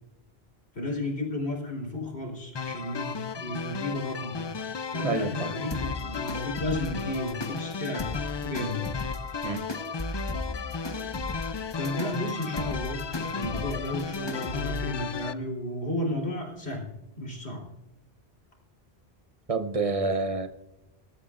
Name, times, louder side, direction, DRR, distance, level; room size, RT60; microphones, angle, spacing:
voice 1, 0.8-8.1 8.4-8.9 11.8-16.9 17.2-17.7, left 1 dB, 90° left, 3.8 m, -33 dB
sound 1, 2.6-15.3, left 5 dB, 45° left, 0.3 m, -35 dB
voice 2, 5.0-5.5 9.4-9.6 19.5-20.5, right 3 dB, 35° right, 0.8 m, -28 dB
sound 2, 5.7-14.9, left 2 dB, 25° left, 1.1 m, -37 dB
23.5 x 13.0 x 2.5 m
omnidirectional pair, 1.0 m